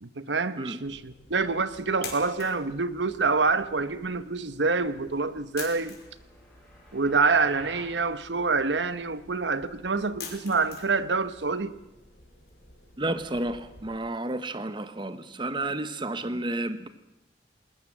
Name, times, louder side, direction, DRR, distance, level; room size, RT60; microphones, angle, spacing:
voice 1, 0.0-6.0 6.9-11.7, right 4 dB, 85° right, 13 dB, 1.1 m, -26 dB
sound 1, 0.8-13.9, left 5 dB, 60° left, 5.0 m, -48 dB
sound 2, 5.8-8.0, left 1 dB, 5° left, 8.0 m, -49 dB
voice 2, 13.0-16.9, right 2 dB, 25° right, 11 dB, 1.1 m, -31 dB
20.0 x 20.0 x 7.4 m, 0.97 s
head